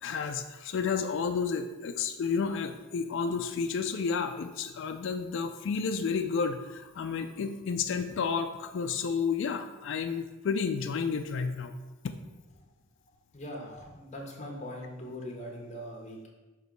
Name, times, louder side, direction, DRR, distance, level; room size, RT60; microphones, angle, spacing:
voice 1, 0.0-11.8 12.0-12.2, left 5 dB, 65° left, 7 dB, 0.4 m, -31 dB
voice 2, 13.3-16.3, equal, 35° left, 0 dB, 1.1 m, -41 dB
6.1 x 3.0 x 5.1 m, 1.1 s
head